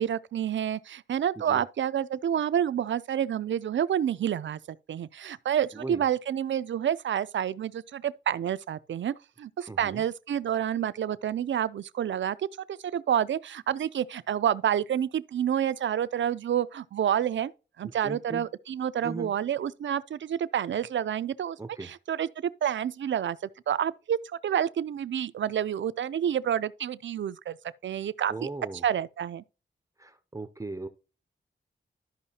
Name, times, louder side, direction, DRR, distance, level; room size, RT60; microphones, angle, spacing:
voice 1, 0.0-4.6 4.9-17.5 17.8-24.2 24.4-27.6 27.8-28.5 28.8-29.4, right 9 dB, 80° right, 0.4 m, -29 dB
voice 2, 5.7-6.0 9.7-10.0 17.8-18.4 19.0-19.3 21.6-21.9 28.3-28.8 30.0-30.9, right 2 dB, 15° right, 0.4 m, -38 dB
12.5 x 5.5 x 2.8 m
wide cardioid pair, 145°, 19 cm